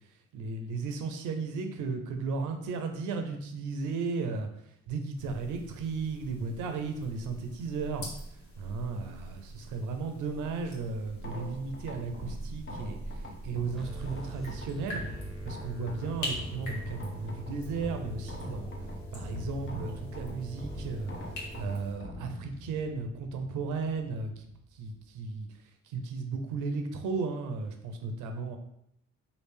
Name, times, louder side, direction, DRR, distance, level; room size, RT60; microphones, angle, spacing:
voice 1, 0.3-4.5 4.9-8.1 8.6-15.0 15.4-18.7 19.1-21.1 21.5-24.5 24.7-25.5 25.8-28.6, right 4 dB, 85° right, 6 dB, 0.6 m, -35 dB
sound 1, 5.2-22.0, equal, 85° left, 1.2 m, -44 dB
sound 2, 11.1-25.4, left 2 dB, 40° left, 0.7 m, -44 dB
sound 3, 13.8-21.8, right 2 dB, ahead, 0.8 m, -44 dB
3.2 x 2.5 x 3.3 m, 0.75 s
cardioid pair, 90°, 30 cm